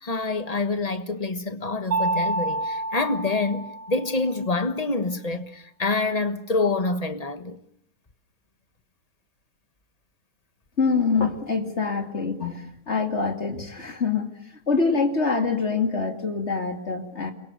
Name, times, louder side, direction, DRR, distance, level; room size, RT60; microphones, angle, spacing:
voice 1, 0.0-7.6, left 3 dB, 25° left, 1.4 m, -26 dB
Mallet percussion, 1.9-4.4, right 2 dB, 40° right, 3.2 m, -28 dB
voice 2, 10.8-14.3 14.7-17.3, left 4 dB, 45° left, 2.9 m, -25 dB
29.0 x 23.0 x 6.7 m
omnidirectional pair, 1.6 m